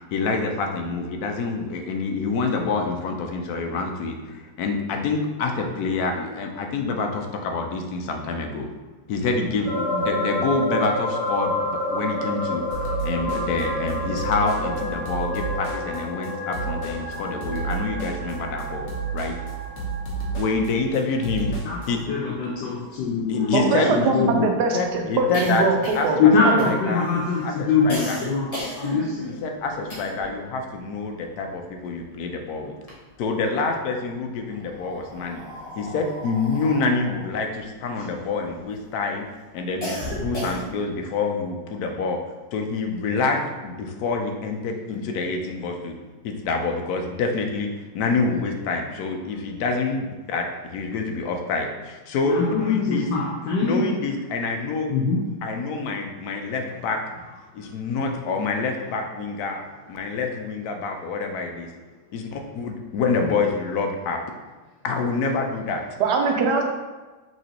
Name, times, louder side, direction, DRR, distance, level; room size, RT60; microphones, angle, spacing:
voice 1, 0.1-8.7 9.1-18.9 19.1-19.4 20.3-21.6 21.9-22.0 23.3-23.9 24.7-25.6 25.9-26.3 26.6-27.1 27.4-28.2 29.3-32.7 33.2-35.4 35.8-39.3 39.5-42.2 42.5-46.0 46.2-53.1 53.6-54.9 55.4-57.0 57.5-59.6 59.9-61.7 62.1-64.2 64.8-65.8, left 4 dB, 70° left, 3 dB, 1.0 m, -27 dB
sound 1, 9.6-21.4 21.8-21.9, left 1 dB, 10° right, 0.7 m, -29 dB
sound 2, 12.7-21.9, right 5 dB, 50° left, 1.1 m, -32 dB
voice 2, 21.5-24.5 26.2-29.2 52.2-53.8 54.9-55.2, left 5 dB, 85° left, -4 dB, 1.3 m, -23 dB
sound 3, 22.2-22.3 22.5-22.6 23.0-30.4 30.7-32.3 32.6-33.6 34.3-38.8 39.2-41.0, equal, 30° left, 0.8 m, -36 dB
voice 3, 23.5-26.2 26.4-26.7 66.0-66.6, right 4 dB, 75° right, 2 dB, 1.2 m, -22 dB
5.7 x 3.1 x 2.9 m, 1.2 s
omnidirectional pair, 1.9 m